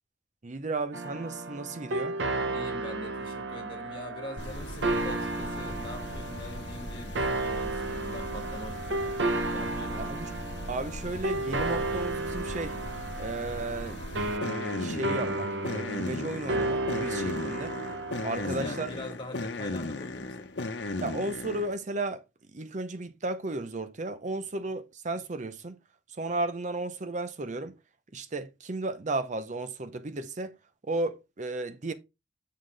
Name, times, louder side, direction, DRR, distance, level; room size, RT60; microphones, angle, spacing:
voice 1, 0.4-2.2 10.0-10.3 10.7-12.8 13.2-14.0 14.7-17.8 18.2-18.9 21.0-22.2 22.5-25.8 26.2-27.7 28.1-30.5 30.9-31.9, right 2 dB, 40° right, 0.6 m, -34 dB
sound 1, 0.9-18.9, right 2 dB, 70° right, 0.8 m, -33 dB
voice 2, 2.5-9.2 9.5-10.2 18.3-20.5, left 2 dB, 25° left, 2.0 m, -43 dB
sound 2, 4.4-21.8, left 2 dB, 65° left, 1.0 m, -37 dB
6.6 x 5.7 x 3.3 m
head